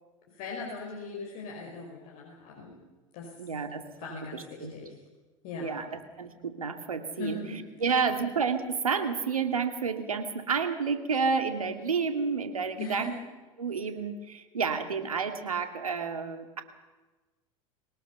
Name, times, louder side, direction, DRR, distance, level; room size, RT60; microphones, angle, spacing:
voice 1, 0.3-2.8 3.1-3.3 4.0-5.0 5.4-5.9 7.2-7.6 12.8-13.2, left 3 dB, 55° left, -1 dB, 4.9 m, -39 dB
voice 2, 3.4-3.8 4.1-4.7 5.6-5.9 6.2-7.4 7.8-13.1 13.6-16.6, right 5 dB, 90° right, 7 dB, 2.2 m, -30 dB
22.5 x 19.0 x 6.9 m, 1.2 s
hypercardioid pair, 85°, 18 cm